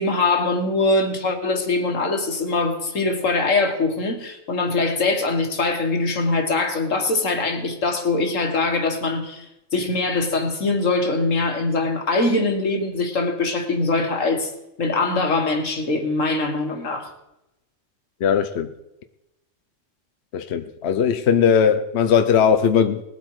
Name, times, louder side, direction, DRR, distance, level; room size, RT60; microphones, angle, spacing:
voice 1, 0.0-14.5 14.8-17.1, left 3 dB, 90° left, 2.1 m, -22 dB
voice 2, 18.2-18.7 20.3-23.0, left 7 dB, 60° left, 1.0 m, -19 dB
19.5 x 8.0 x 4.8 m
omnidirectional pair, 1.3 m